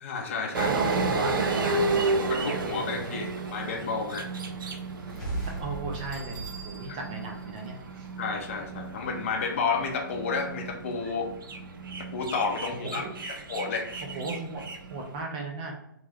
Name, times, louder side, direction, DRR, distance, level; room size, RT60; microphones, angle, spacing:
voice 1, 0.0-0.7 2.3-4.3 6.9-7.0 8.2-11.3 12.1-13.9, left 4 dB, 40° left, 3 dB, 0.6 m, -31 dB
voice 2, 0.5-1.9 2.9-3.3 5.6-8.1 12.8-13.2 14.0-14.6 14.9-15.7, right 3 dB, 25° right, 1 dB, 0.4 m, -36 dB
sound 1, 0.5-15.2, right 3 dB, 75° right, 0.6 m, -32 dB
sound 2, 4.9-7.6, right 2 dB, 5° left, 0.9 m, -37 dB
Bell, 5.9-8.6, right 6 dB, 60° right, 1.1 m, -48 dB
3.1 x 2.4 x 3.4 m, 0.82 s
hypercardioid pair, 160°, 11 cm